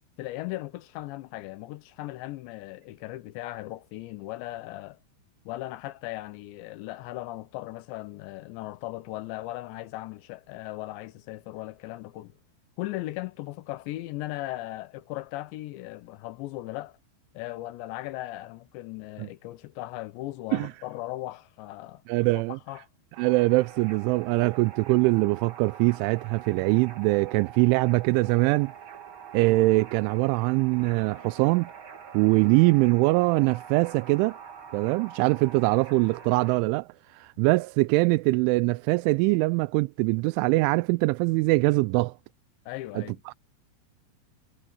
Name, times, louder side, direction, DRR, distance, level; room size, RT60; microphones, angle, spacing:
voice 1, 0.2-5.0 5.5-12.3 12.8-17.0 17.3-22.0 22.3-22.9 42.7-43.2, left 17 dB, 80° left, 2.9 m, -37 dB
voice 2, 22.1-22.6 23.2-28.7 29.3-31.7 32.1-34.4 34.7-42.1 43.0-43.3, right 24 dB, 85° right, 3.0 m, -23 dB
sound 1, 23.1-36.6, right 8 dB, 45° right, 1.8 m, -45 dB
omnidirectional pair, 5.5 m